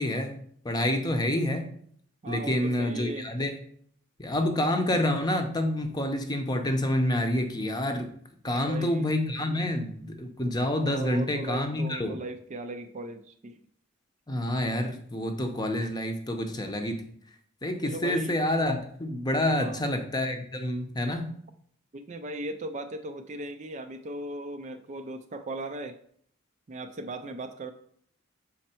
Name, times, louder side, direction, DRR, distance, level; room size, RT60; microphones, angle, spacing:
voice 1, 0.0-1.7 2.3-3.6 4.2-8.1 8.4-12.2 14.3-17.0 17.6-21.3, left 1 dB, 20° left, 5 dB, 0.7 m, -28 dB
voice 2, 2.2-3.3 8.4-9.1 10.9-13.6 17.8-18.4 19.5-19.8 21.9-26.0 26.7-27.7, right 2 dB, 35° right, 7 dB, 0.4 m, -38 dB
6.4 x 4.3 x 4.4 m, 0.63 s
head